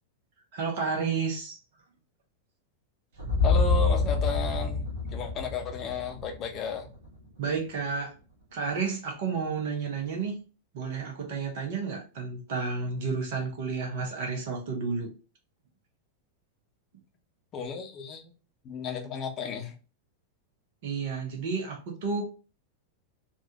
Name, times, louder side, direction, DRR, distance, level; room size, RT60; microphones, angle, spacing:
voice 1, 0.5-1.6 7.4-8.1 8.5-10.4 10.7-15.1 20.8-22.2, right 5 dB, 50° right, 1 dB, 1.2 m, -31 dB
sound 1, 3.2-7.2, left 4 dB, 70° right, 1.1 m, -27 dB
voice 2, 3.4-6.9 17.5-18.3 18.6-19.7, left 4 dB, 30° left, 3 dB, 0.8 m, -33 dB
3.9 x 2.5 x 2.9 m, 0.33 s
figure-of-eight pair, 90°, 0 cm